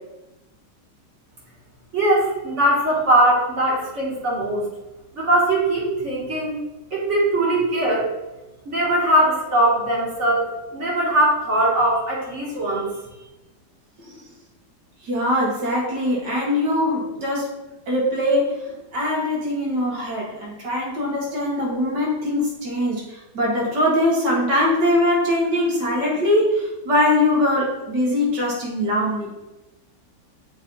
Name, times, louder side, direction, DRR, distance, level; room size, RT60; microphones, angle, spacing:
voice 1, 1.9-4.7 5.1-6.6 6.9-8.1 8.7-12.9, right 1 dB, 40° right, -5 dB, 2.0 m, -20 dB
voice 2, 15.0-17.5 17.9-18.6 18.9-29.3, left 1 dB, 75° right, -3 dB, 2.4 m, -22 dB
7.2 x 4.2 x 4.0 m, 1.0 s
omnidirectional pair, 1.9 m